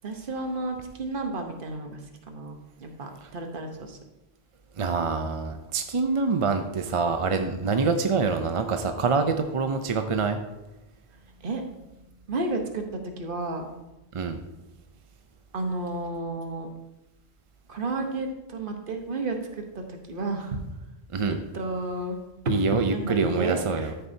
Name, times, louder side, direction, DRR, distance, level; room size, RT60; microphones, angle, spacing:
voice 1, 0.0-2.0 2.3-4.0 11.4-11.6 12.3-13.7 15.5-16.7 17.7-20.6 21.3-22.2 22.9-23.9, right 2 dB, 55° right, 4 dB, 1.2 m, -32 dB
voice 2, 4.8-10.4 14.1-14.4 21.1-21.4 22.5-23.9, right 4 dB, 40° right, 6 dB, 0.5 m, -25 dB
13.0 x 6.7 x 2.7 m, 1.0 s
omnidirectional pair, 1.1 m